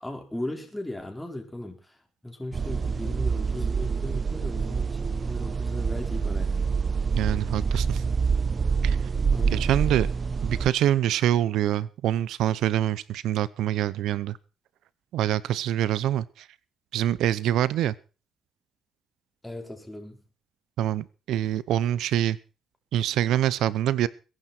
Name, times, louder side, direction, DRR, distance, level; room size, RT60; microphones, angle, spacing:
voice 1, 0.0-2.0 2.2-6.7 9.3-9.7 19.4-20.2, left 1 dB, 10° left, 4.8 m, -37 dB
sound 1, 2.5-10.7, right 5 dB, 35° right, 0.7 m, -26 dB
voice 2, 7.2-8.0 8.8-9.0 9.5-10.1 10.4-14.4 15.1-16.5 16.9-17.9 20.8-22.4 22.9-24.1, right 11 dB, 85° right, 0.7 m, -25 dB
21.5 x 11.0 x 4.4 m
cardioid pair, 90°, 0 cm